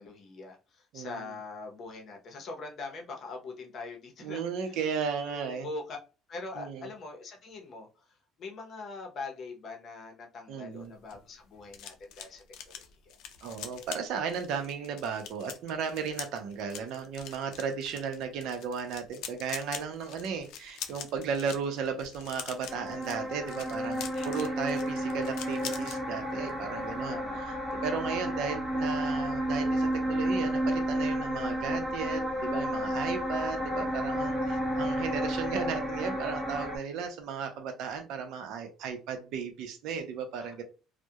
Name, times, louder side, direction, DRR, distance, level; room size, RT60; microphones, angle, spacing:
voice 1, 0.0-6.0 6.3-13.2 24.1-24.6 27.0-27.4 32.8-33.2 40.4-40.5, left 3 dB, 45° left, 2 dB, 0.7 m, -43 dB
voice 2, 4.2-5.7 6.6-6.9 10.5-10.9 13.4-40.6, right 6 dB, 70° right, 6 dB, 0.6 m, -35 dB
sound 1, 10.8-26.0 26.3-26.6 26.9-27.1, left 8 dB, 70° left, 0.4 m, -44 dB
sound 2, 22.7-36.8, equal, 5° right, 0.7 m, -31 dB
2.3 x 2.1 x 2.7 m, 0.33 s
cardioid pair, 135°, 0 cm